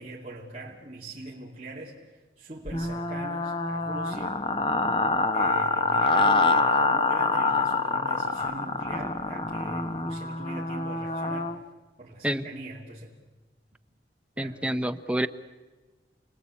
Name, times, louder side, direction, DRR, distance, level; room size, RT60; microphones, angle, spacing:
voice 1, 0.0-4.4 5.3-11.6 12.0-13.1 14.4-14.6, right 1 dB, 35° right, -5 dB, 2.9 m, -41 dB
sound 1, 2.7-11.6, left 3 dB, 30° left, 1.0 m, -26 dB
voice 2, 14.4-15.3, right 1 dB, 5° right, 9 dB, 0.8 m, -28 dB
29.5 x 19.5 x 8.5 m, 1.2 s
head